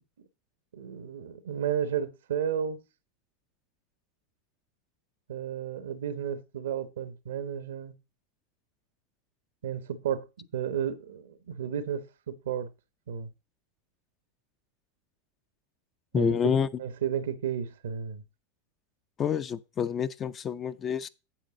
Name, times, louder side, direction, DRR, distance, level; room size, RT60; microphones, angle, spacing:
voice 1, 0.7-2.8 5.3-7.9 9.6-10.3 10.5-12.7 13.1-13.3 16.1-18.2, right 8 dB, 85° right, 1.1 m, -32 dB
voice 2, 16.1-16.7 19.2-21.1, left 8 dB, 30° left, 0.5 m, -28 dB
9.2 x 7.3 x 3.8 m
hypercardioid pair, 110°, 0 cm